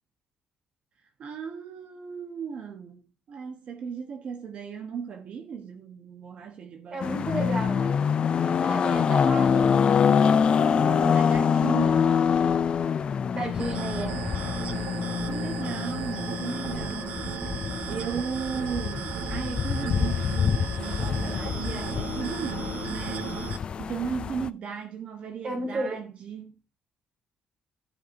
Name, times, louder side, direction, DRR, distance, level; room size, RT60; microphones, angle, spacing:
voice 1, 1.2-3.0 3.3-7.3 10.6-12.2 15.3-17.4 17.9-23.4 23.8-26.6, right 6 dB, 55° right, 1.1 m, -36 dB
voice 2, 6.9-8.0 8.4-10.0 13.3-14.2 25.4-26.0, right 2 dB, 40° right, 2.9 m, -33 dB
sound 1, 7.0-24.5, left 7 dB, 45° left, 0.3 m, -25 dB
sound 2, 13.6-23.6, right 9 dB, 75° right, 0.7 m, -35 dB
10.5 x 5.7 x 2.7 m
cardioid pair, 110°, 2 cm